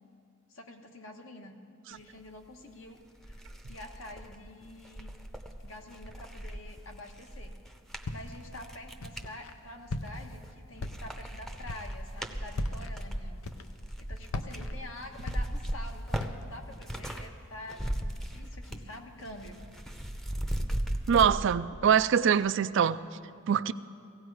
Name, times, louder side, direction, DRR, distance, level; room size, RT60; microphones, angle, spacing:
voice 1, 0.5-1.6 1.9-3.0 3.3-3.4 3.7-5.1 5.6-7.5 8.1-13.4 14.0-19.6, left 1 dB, 70° left, 3 dB, 1.3 m, -47 dB
sound 1, 2.7-2.8 3.2-9.3 9.9-10.5 10.8-17.3 17.5-18.9 19.2-21.3, equal, ahead, 0.7 m, -37 dB
Walk footsteps, 8.0-8.5 9.0-9.5 9.9-10.4 10.8-11.3 11.6-12.0 12.5-12.9 13.4-13.9 14.3-15.8 16.2-16.6, left 2 dB, 90° left, 0.7 m, -38 dB
voice 2, 21.1-23.0 23.5-23.7, right 7 dB, 60° right, 13 dB, 0.4 m, -24 dB
17.5 x 16.0 x 4.8 m, 2.5 s
head